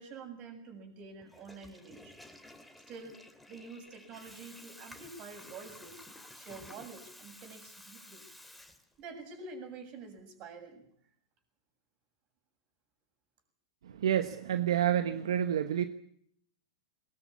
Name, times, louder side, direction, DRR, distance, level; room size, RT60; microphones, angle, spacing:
voice 1, 0.0-2.1 2.9-3.2 3.5-6.0 6.3-8.2 9.0-10.9, right 4 dB, 40° right, 7.5 m, -47 dB
Water tap faucet / Toilet flush, 1.2-9.2, left 1 dB, ahead, 2.7 m, -53 dB
voice 2, 13.8-15.8, right 10 dB, 80° right, 1.2 m, -29 dB
21.0 x 21.0 x 8.6 m
hypercardioid pair, 115°, 3 cm